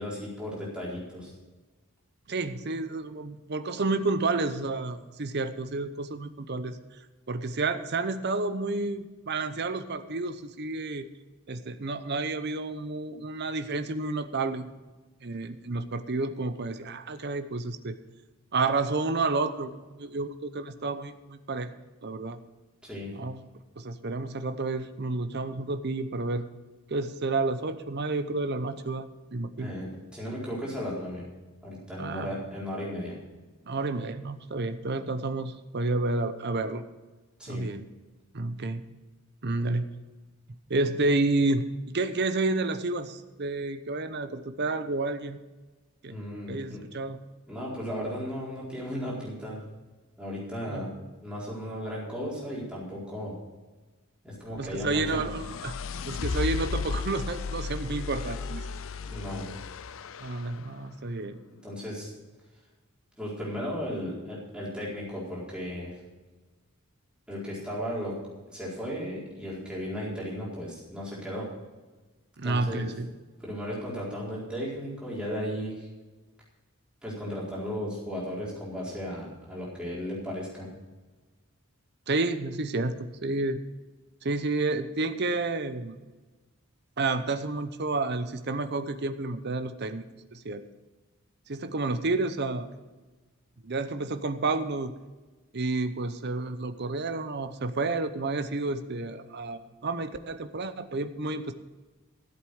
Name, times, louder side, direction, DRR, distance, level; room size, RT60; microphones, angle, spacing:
voice 1, 0.0-1.3 22.8-23.1 29.6-31.2 31.6-33.1 37.4-37.7 46.1-46.8 47.5-49.6 50.2-50.9 51.2-53.4 54.2-55.3 59.0-59.5 61.6-62.1 63.2-66.0 67.3-68.1 68.5-71.5 72.4-72.9 73.4-75.9 77.0-80.7, equal, 5° right, -6 dB, 4.3 m, -35 dB
voice 2, 2.3-6.8 7.3-11.1 11.5-14.7 15.2-18.0 18.5-21.7 22.0-22.4 23.1-23.4 23.8-26.5 26.9-29.7 32.0-32.3 33.7-36.8 37.5-37.9 38.3-38.8 39.4-39.8 40.7-41.7 41.9-45.4 46.0-46.2 46.5-47.2 50.7-50.9 54.5-55.7 56.1-58.6 60.2-61.4 72.4-73.1 82.1-83.6 84.2-86.0 87.0-90.0 90.3-90.6 91.5-92.7 93.6-94.9 95.5-101.5, right 3 dB, 50° right, 10 dB, 0.8 m, -30 dB
sound 1, 54.6-60.6, left 5 dB, 60° left, 0.5 m, -35 dB
14.0 x 8.0 x 6.4 m, 1.2 s
head